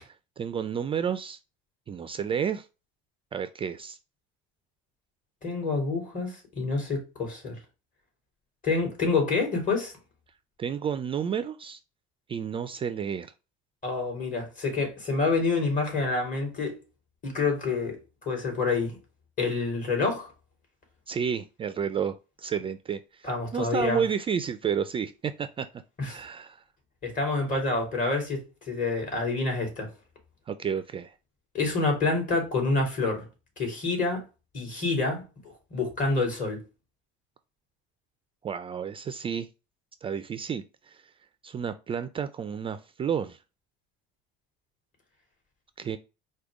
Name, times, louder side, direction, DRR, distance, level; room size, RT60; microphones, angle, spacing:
voice 1, 0.0-1.4 1.9-2.7 3.3-4.0 10.6-11.8 12.3-13.3 21.1-25.7 26.1-26.6 30.5-31.1 38.4-39.5 40.0-41.0 41.4-43.4 45.8-46.0, right 7 dB, 25° right, 0.3 m, -31 dB
voice 2, 5.4-7.6 8.6-9.9 13.8-16.8 17.2-18.0 18.2-19.0 19.4-20.3 23.2-24.0 26.0-26.2 27.0-29.9 31.5-33.3 33.6-34.2 34.5-35.2 35.7-36.6, left 3 dB, 40° left, 2.9 m, -27 dB
4.9 x 2.2 x 4.7 m
supercardioid pair, 105°, 20 cm